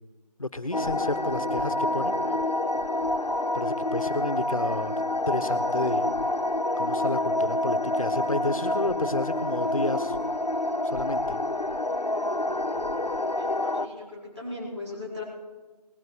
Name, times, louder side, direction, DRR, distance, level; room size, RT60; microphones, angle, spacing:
voice 1, 0.4-2.2 3.5-4.9 5.3-6.1 6.8-10.2 10.8-11.4, left 2 dB, 55° left, 12 dB, 1.2 m, -31 dB
sound 1, 0.7-13.9, left 1 dB, 75° left, 1.0 m, -27 dB
Guitar, 0.8-4.6, right 1 dB, 5° left, 1.1 m, -45 dB
voice 2, 13.3-15.2, left 2 dB, 40° right, -3 dB, 4.3 m, -38 dB
19.5 x 9.4 x 6.4 m, 1.2 s
figure-of-eight pair, 170°, 21 cm